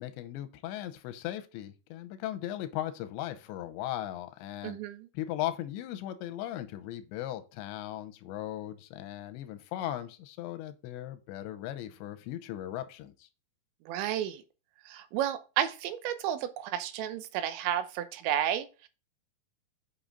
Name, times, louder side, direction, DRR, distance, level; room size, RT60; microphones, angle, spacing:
voice 1, 0.0-4.8 5.1-13.3, left 13 dB, 90° left, 3.1 m, -38 dB
voice 2, 4.6-5.1 13.9-14.4 14.9-18.9, right 11 dB, 90° right, 3.2 m, -32 dB
8.6 x 5.7 x 3.8 m
omnidirectional pair, 5.1 m